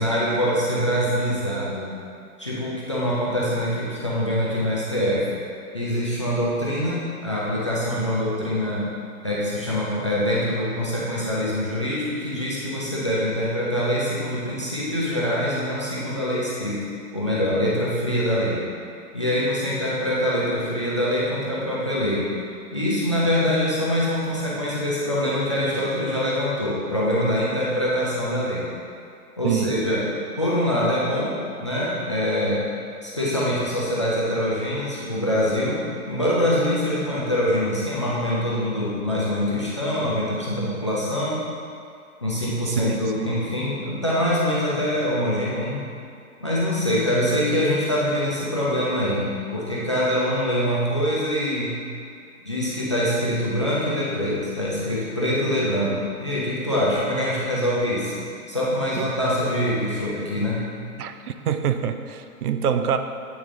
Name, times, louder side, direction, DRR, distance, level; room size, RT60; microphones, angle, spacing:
voice 1, 0.0-1.9 2.4-5.3 5.7-8.8 9.2-16.8 17.1-18.6 19.1-22.3 22.7-28.6 29.4-30.1 30.3-32.6 33.0-41.5 42.2-45.8 46.4-51.8 52.4-58.1 58.5-60.7, equal, 25° left, -7 dB, 0.3 m, -24 dB
voice 2, 29.4-29.8 42.7-43.3 59.0-59.1 61.0-63.0, right 8 dB, 80° right, 8 dB, 0.6 m, -26 dB
8.4 x 3.1 x 3.6 m, 2.3 s
hypercardioid pair, 140°, 45 cm